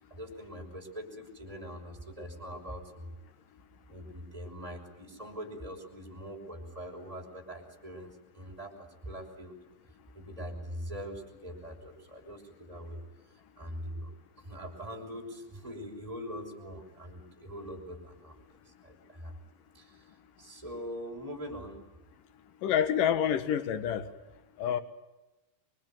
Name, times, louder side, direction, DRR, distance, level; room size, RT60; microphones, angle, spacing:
voice 1, 0.1-3.1 3.9-9.6 10.1-13.0 13.6-14.1 14.4-18.4 18.8-19.3 19.7-20.1 20.4-21.8, equal, 10° right, 5.6 m, -42 dB
voice 2, 22.6-24.1 24.6-24.8, left 9 dB, 70° left, 3.2 m, -27 dB
26.0 x 24.0 x 9.3 m
omnidirectional pair, 4.2 m